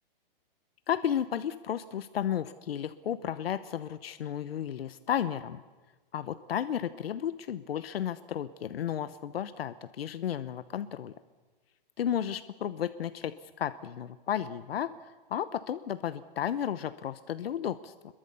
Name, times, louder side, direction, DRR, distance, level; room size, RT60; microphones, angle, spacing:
voice 1, 0.9-5.6 6.1-11.1 12.0-17.9, left 9 dB, 90° left, 12 dB, 1.1 m, -33 dB
26.5 x 22.5 x 6.9 m, 1.3 s
hypercardioid pair, 165°, 29 cm